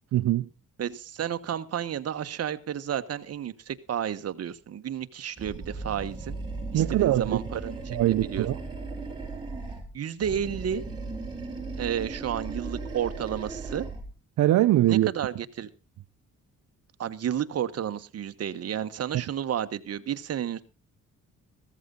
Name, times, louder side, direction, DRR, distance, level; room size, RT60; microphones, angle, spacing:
voice 1, 0.1-0.5 6.7-7.4 7.9-8.6 14.4-15.1, right 14 dB, 70° right, 0.7 m, -22 dB
voice 2, 0.8-6.3 6.7-8.0 8.3-8.5 9.9-10.8 11.8-13.8 14.9-15.7 17.0-20.6, right 9 dB, 55° right, 1.3 m, -31 dB
Animal, 5.4-9.9 10.2-14.1, right 3 dB, 15° right, 6.2 m, -37 dB
15.5 x 14.0 x 3.9 m
cardioid pair, 90°, 30 cm